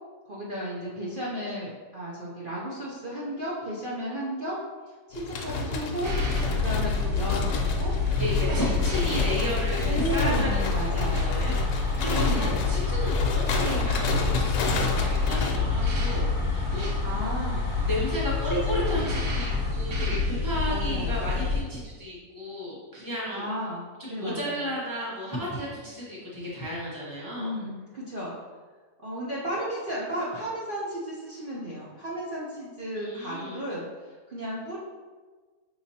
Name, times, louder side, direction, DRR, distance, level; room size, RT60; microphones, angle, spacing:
voice 1, 0.2-4.6 5.1-6.1 6.5-7.9 8.5-8.6 9.8-11.5 12.1-12.7 17.0-17.7 18.5-19.2 20.7-21.3 23.3-24.6 27.4-28.3 29.0-34.8, equal, 50° right, -7 dB, 0.7 m, -34 dB
sound 1, 5.1-15.6, left 3 dB, 90° left, 1.2 m, -30 dB
sound 2, 6.0-21.6, left 4 dB, 65° right, 1.2 m, -27 dB
voice 2, 8.2-17.1 17.8-23.5 24.0-27.5 33.0-33.6, equal, 20° left, -7 dB, 0.7 m, -33 dB
sound 3, 10.1-19.7, left 1 dB, 55° left, 0.9 m, -41 dB
6.0 x 2.9 x 2.7 m, 1.4 s
omnidirectional pair, 1.6 m